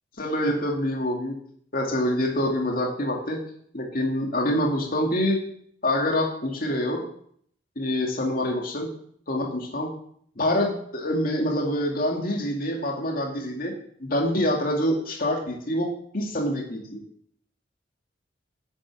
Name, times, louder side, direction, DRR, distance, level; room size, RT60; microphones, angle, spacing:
voice 1, 0.2-1.3 1.7-3.4 3.7-5.4 5.8-7.0 7.8-8.9 9.3-9.9 10.4-13.7 14.0-17.0, left 1 dB, 55° left, 0 dB, 2.4 m, -26 dB
11.0 x 8.7 x 7.4 m, 0.64 s
head